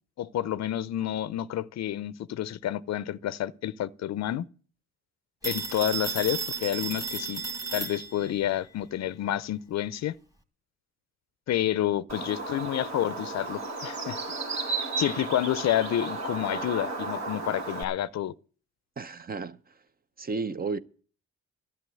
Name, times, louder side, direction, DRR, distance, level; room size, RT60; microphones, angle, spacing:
voice 1, 0.2-4.5 5.4-7.4 7.7-10.2 11.5-14.2 15.0-18.3, left 12 dB, 60° left, 0.6 m, -29 dB
Telephone, 5.4-8.4, right 4 dB, 10° right, 1.9 m, -34 dB
Bird, 12.1-17.8, right 3 dB, 65° right, 2.6 m, -34 dB
voice 2, 19.0-19.6 20.2-20.8, right 4 dB, 30° right, 0.7 m, -32 dB
11.5 x 6.8 x 9.1 m
cardioid pair, 90°, 30 cm